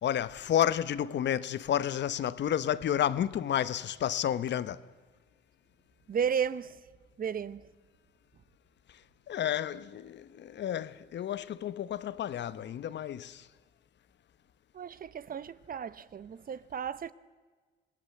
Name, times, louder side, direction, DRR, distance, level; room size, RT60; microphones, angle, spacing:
voice 1, 0.0-4.8 9.3-13.5, left 10 dB, 65° left, 0.9 m, -31 dB
voice 2, 6.1-6.8 7.2-7.7 14.7-17.1, right 7 dB, 45° right, 0.9 m, -34 dB
25.5 x 17.5 x 7.7 m
cardioid pair, 90°, 20 cm